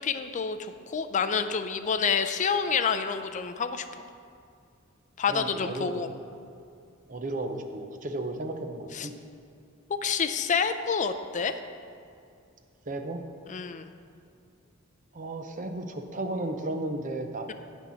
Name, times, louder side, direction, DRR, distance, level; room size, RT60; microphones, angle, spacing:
voice 1, 0.0-3.8 5.2-6.1 8.9-9.1 10.0-11.6 13.5-13.9, left 6 dB, 35° left, 8 dB, 0.4 m, -28 dB
voice 2, 5.3-6.1 7.1-9.1 12.9-13.2 15.1-17.5, right 2 dB, 40° right, 6 dB, 0.7 m, -34 dB
8.9 x 6.2 x 5.7 m, 2.4 s
head